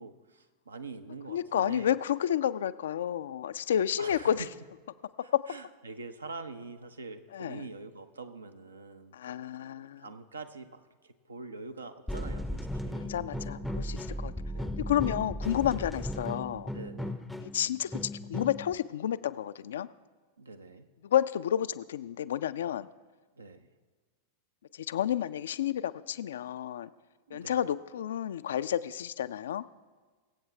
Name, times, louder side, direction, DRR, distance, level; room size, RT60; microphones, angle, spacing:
voice 1, 0.0-2.0 4.0-4.5 5.2-9.4 9.6-14.7 15.8-15.9 16.7-17.2 20.4-20.9 23.4-23.7 27.3-27.6, right 3 dB, 75° right, 9 dB, 0.7 m, -45 dB
voice 2, 1.3-4.4 5.3-5.4 7.3-7.6 9.1-10.0 13.1-14.3 14.8-16.7 17.4-18.0 18.3-19.9 21.0-22.9 24.7-26.9 27.3-29.6, left 10 dB, 60° left, 14 dB, 0.4 m, -30 dB
sound 1, 12.1-18.7, left 1 dB, ahead, 0.6 m, -36 dB
23.5 x 8.0 x 3.3 m, 1.4 s
figure-of-eight pair, 90°, 0 cm